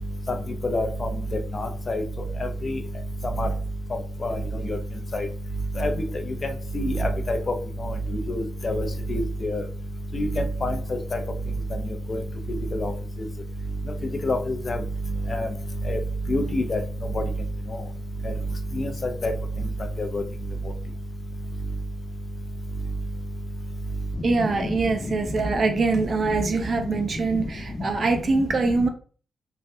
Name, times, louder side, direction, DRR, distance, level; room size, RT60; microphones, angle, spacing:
voice 1, 0.6-1.1 1.5-2.0 2.6-2.7 3.4-3.5 4.2-4.4 4.6-4.8 5.1-5.3 5.8-5.9 6.7-7.6 7.8-9.6 10.1-10.3 10.6-10.7 11.1-11.2 12.1-12.2 12.7-12.9 14.2-14.8 15.3-15.5 15.9-16.0 16.3-16.8 17.1-17.2 18.8-18.9 19.2-19.3 20.0-20.2, left 1 dB, 45° left, 6 dB, 0.5 m, -26 dB
voice 2, 24.2-28.9, right 3 dB, 55° right, 5 dB, 0.6 m, -23 dB
3.2 x 2.3 x 2.7 m, 0.41 s
cardioid pair, 70°, 0 cm